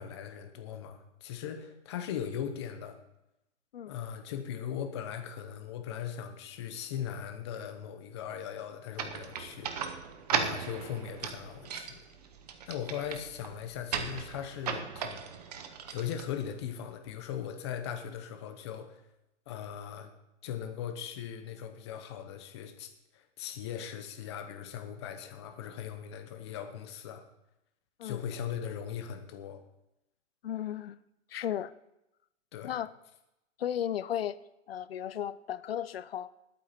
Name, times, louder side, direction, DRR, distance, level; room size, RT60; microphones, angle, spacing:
voice 1, 0.0-3.0 3.9-9.9 10.3-12.0 12.7-15.2 15.5-19.0 19.5-20.1 20.4-27.2 28.0-29.6 32.5-32.7, left 9 dB, 20° left, 6 dB, 0.9 m, -39 dB
sound 1, 9.0-16.8, right 7 dB, 30° right, 0.9 m, -37 dB
voice 2, 30.4-31.0 31.3-31.7 32.6-32.9 33.6-34.4 34.7-36.3, left 10 dB, 50° left, 17 dB, 0.6 m, -34 dB
20.0 x 8.4 x 4.4 m, 0.89 s
hypercardioid pair, 170°, 38 cm